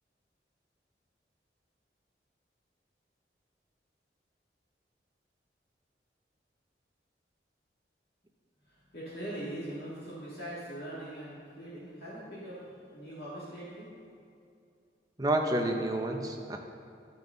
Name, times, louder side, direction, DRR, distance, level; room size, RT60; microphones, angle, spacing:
voice 1, 8.6-13.9, right 1 dB, 60° left, -10 dB, 2.4 m, -42 dB
voice 2, 15.2-16.6, right 1 dB, 20° right, 2 dB, 0.7 m, -29 dB
13.5 x 5.8 x 3.9 m, 2.4 s
head